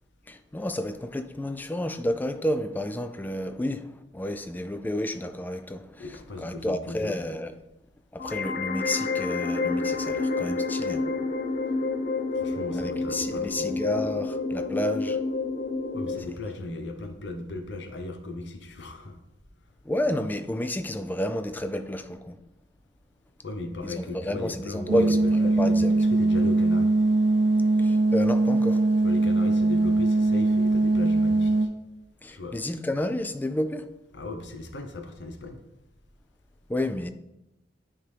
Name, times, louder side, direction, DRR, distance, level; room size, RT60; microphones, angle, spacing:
voice 1, 0.3-7.5 8.1-11.1 12.7-15.2 16.3-16.4 19.8-22.4 23.8-25.9 27.8-28.9 32.2-33.9 36.7-37.1, left 1 dB, 10° left, 0.3 m, -31 dB
voice 2, 6.0-7.2 12.3-13.7 15.9-19.2 23.4-26.9 29.0-31.7 32.3-32.6 34.1-35.6, left 2 dB, 80° left, 0.8 m, -37 dB
sound 1, 8.2-16.2, left 3 dB, 50° left, 0.7 m, -29 dB
sound 2, 24.9-31.7, right 2 dB, 85° right, 0.6 m, -21 dB
9.5 x 3.6 x 3.3 m
head